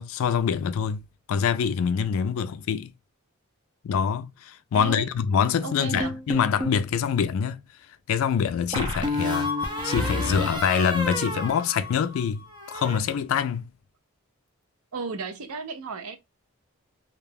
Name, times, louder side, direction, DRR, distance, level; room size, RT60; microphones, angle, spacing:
voice 1, 0.0-2.9 3.8-7.6 8.1-13.7, left 7 dB, 70° left, 0.3 m, -25 dB
voice 2, 4.7-5.1 5.6-6.2 14.9-16.2, right 4 dB, 85° right, 0.5 m, -34 dB
sound 1, 6.0-6.8 8.7-12.2 12.5-13.0, left 1 dB, 20° right, 0.5 m, -30 dB
2.3 x 2.2 x 3.2 m
head